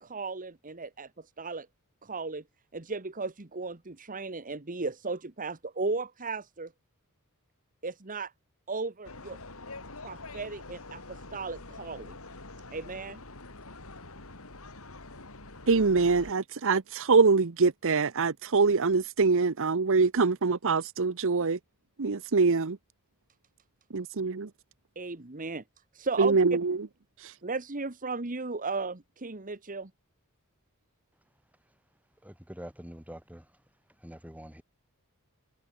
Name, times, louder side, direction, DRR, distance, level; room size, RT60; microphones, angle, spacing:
voice 1, 0.0-1.7 2.0-2.4 2.7-6.7 7.8-8.3 8.7-9.4 10.0-12.2 12.7-13.2 24.9-25.6 25.9-26.4 27.4-29.9, right 3 dB, 40° right, 1.4 m, -35 dB
sound 1, 9.0-16.3, left 2 dB, 65° left, 4.4 m, -45 dB
voice 2, 15.7-21.6 22.0-22.8 23.9-24.5 26.2-26.8 27.2-27.3, right 4 dB, 60° right, 0.8 m, -24 dB
voice 3, 32.2-33.5 34.0-34.6, equal, 5° right, 5.9 m, -45 dB
head